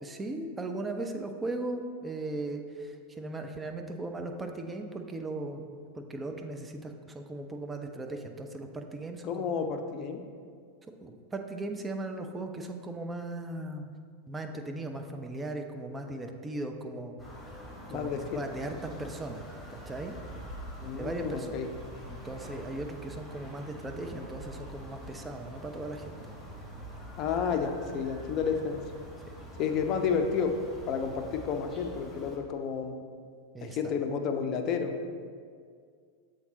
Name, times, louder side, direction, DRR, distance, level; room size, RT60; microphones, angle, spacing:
voice 1, 0.0-9.6 11.0-13.9 14.3-17.1 17.4-18.1 18.3-20.2 20.9-21.6 22.1-26.4 33.5-33.9, right 2 dB, 15° right, 4 dB, 0.5 m, -38 dB
voice 2, 9.2-10.2 17.9-18.4 20.8-21.7 27.2-28.8 29.6-30.6 30.9-32.9 33.6-34.9, left 6 dB, 35° left, 5 dB, 0.5 m, -31 dB
Foley Village Birds Ruster, 17.2-32.4, equal, 10° left, 1.3 m, -45 dB
7.2 x 3.9 x 3.9 m, 2.1 s
figure-of-eight pair, 90°, 0 cm